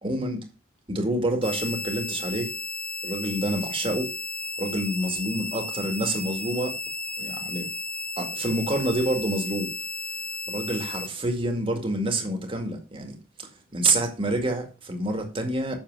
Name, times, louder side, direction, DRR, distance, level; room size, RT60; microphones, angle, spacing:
voice 1, 0.0-0.4 0.9-2.5 3.0-4.1 4.6-6.8 7.2-7.7 8.2-9.7 10.5-15.8, right 1 dB, 25° right, 2.1 m, -27 dB
sound 1, 1.4-11.1, left 3 dB, 5° left, 0.5 m, -34 dB
7.9 x 6.8 x 4.8 m
head